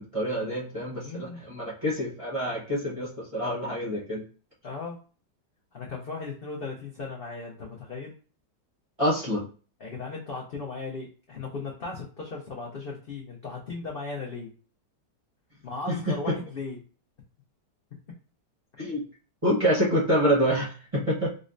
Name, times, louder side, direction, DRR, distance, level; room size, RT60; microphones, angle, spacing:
voice 1, 0.0-4.2 9.0-9.4 15.9-16.0 18.8-19.0 19.4-21.3, equal, 30° right, -6 dB, 0.7 m, -26 dB
voice 2, 1.0-1.4 4.6-5.0 5.7-8.2 9.8-14.5 15.6-16.8, left 4 dB, 65° left, -3 dB, 0.5 m, -37 dB
5.1 x 2.1 x 2.5 m, 0.38 s
omnidirectional pair, 1.9 m